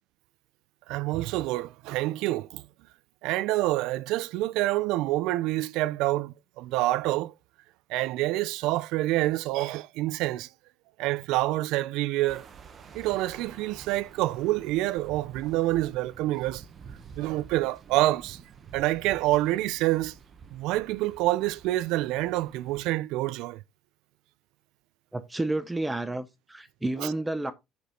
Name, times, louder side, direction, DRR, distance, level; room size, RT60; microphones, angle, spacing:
voice 1, 0.9-2.6 3.2-7.3 7.9-10.5 11.0-12.4 12.9-16.6 17.2-18.4 18.7-20.1 20.5-23.6, right 17 dB, 70° right, 0.5 m, -27 dB
sound 1, 12.3-22.9, right 6 dB, 30° right, 1.0 m, -49 dB
voice 2, 25.1-27.5, right 2 dB, 5° right, 0.6 m, -30 dB
8.3 x 6.2 x 3.8 m
cardioid pair, 170°, 0 cm